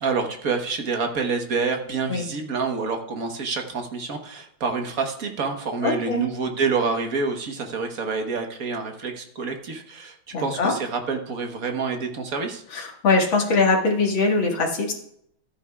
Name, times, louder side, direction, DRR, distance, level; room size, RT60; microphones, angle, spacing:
voice 1, 0.0-12.6, right 4 dB, 50° right, 4 dB, 1.5 m, -27 dB
voice 2, 5.8-6.2 10.3-10.7 12.7-14.9, left 3 dB, 70° left, 0 dB, 2.5 m, -22 dB
14.0 x 9.5 x 2.4 m, 0.69 s
omnidirectional pair, 2.3 m